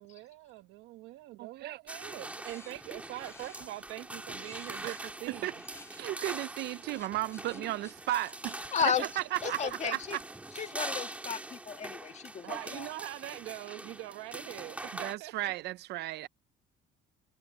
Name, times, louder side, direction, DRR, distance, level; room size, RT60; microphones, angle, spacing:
voice 1, 0.0-5.6 8.8-9.9 12.4-15.3, right 18 dB, 80° right, 1.2 m, -43 dB
voice 2, 1.4-1.8 4.8-5.5 5.9-10.2 14.9-16.3, right 15 dB, 55° right, 0.4 m, -35 dB
sound 1, 1.9-15.2, right 1 dB, 5° right, 3.0 m, -43 dB
sound 2, 2.4-6.4 6.7-10.2, left 3 dB, 15° left, 6.1 m, -56 dB
voice 3, 8.7-9.0 9.4-10.2 10.6-12.9, left 7 dB, 35° left, 1.7 m, -33 dB
cardioid pair, 155°, 20 cm